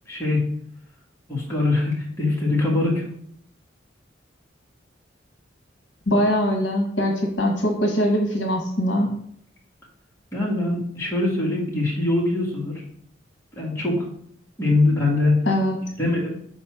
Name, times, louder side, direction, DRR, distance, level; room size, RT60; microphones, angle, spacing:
voice 1, 0.1-0.4 1.3-3.0 10.3-12.8 13.5-14.0 14.6-15.4 16.0-16.4, left 2 dB, 15° left, -4 dB, 2.0 m, -22 dB
voice 2, 6.1-9.1 15.4-15.8, equal, 65° left, 1 dB, 1.2 m, -22 dB
4.9 x 4.2 x 6.0 m, 0.65 s
head